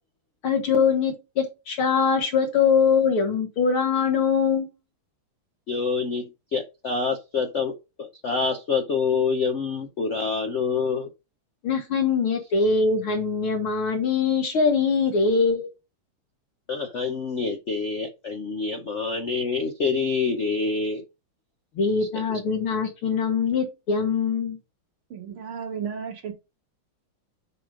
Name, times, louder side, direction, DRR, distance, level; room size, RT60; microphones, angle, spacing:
voice 1, 0.4-4.7 11.6-15.7 21.7-24.6, left 5 dB, 80° left, 2.9 m, -22 dB
voice 2, 5.7-7.7 8.0-11.1 16.7-21.0 22.1-22.4, left 5 dB, 60° left, 0.7 m, -26 dB
voice 3, 25.1-26.3, right 7 dB, 80° right, 2.4 m, -33 dB
6.7 x 5.0 x 5.0 m
omnidirectional pair, 2.3 m